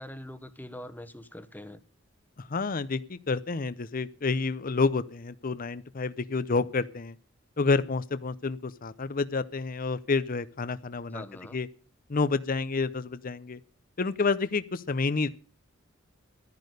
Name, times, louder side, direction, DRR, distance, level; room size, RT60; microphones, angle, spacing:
voice 1, 0.0-1.8 11.1-11.6, left 1 dB, 10° left, 1.2 m, -43 dB
voice 2, 2.4-7.1 7.6-11.2 11.5-11.7 12.1-13.6 14.0-15.3, left 4 dB, 45° left, 0.7 m, -29 dB
13.0 x 10.5 x 6.7 m
head